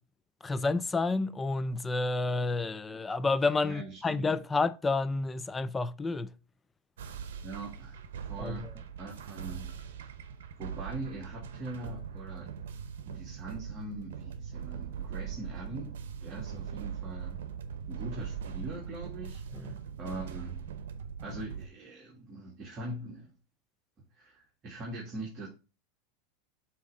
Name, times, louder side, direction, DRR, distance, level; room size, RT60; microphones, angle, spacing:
voice 1, 0.4-6.3 8.4-8.6 19.5-19.8, left 3 dB, 15° left, 0.4 m, -30 dB
voice 2, 3.6-4.3 7.4-8.7 9.0-9.7 10.6-12.5 13.1-15.9 16.2-17.4 17.9-20.6 21.2-23.3 24.1-25.5, right 2 dB, 35° right, 1.8 m, -42 dB
sound 1, 7.0-21.7, right 7 dB, 80° right, 0.8 m, -41 dB
7.3 x 3.1 x 4.7 m
supercardioid pair, 120°, 0 cm